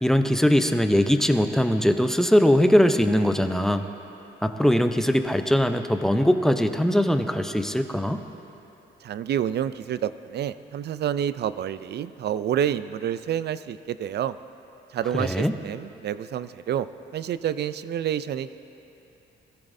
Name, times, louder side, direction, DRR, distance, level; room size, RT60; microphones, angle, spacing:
voice 1, 0.0-3.8 4.4-8.2 15.1-15.6, equal, ahead, 7 dB, 0.7 m, -21 dB
voice 2, 9.0-14.4 14.9-16.9 17.1-18.6, right 10 dB, 55° right, 14 dB, 0.5 m, -28 dB
21.0 x 14.0 x 2.7 m, 2.9 s
cardioid pair, 90°, 20 cm